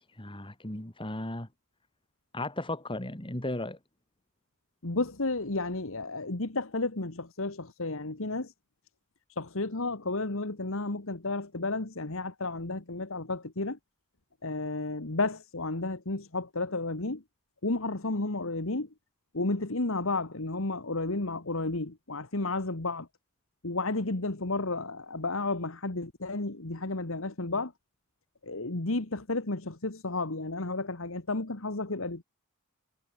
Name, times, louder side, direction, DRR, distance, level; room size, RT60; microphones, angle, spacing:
voice 1, 0.1-1.5 2.3-3.8, left 1 dB, 25° left, 2.6 m, -35 dB
voice 2, 4.8-8.5 9.4-13.8 14.4-17.2 17.6-18.9 19.3-23.1 23.6-27.7 28.4-32.2, left 2 dB, 65° left, 1.8 m, -32 dB
head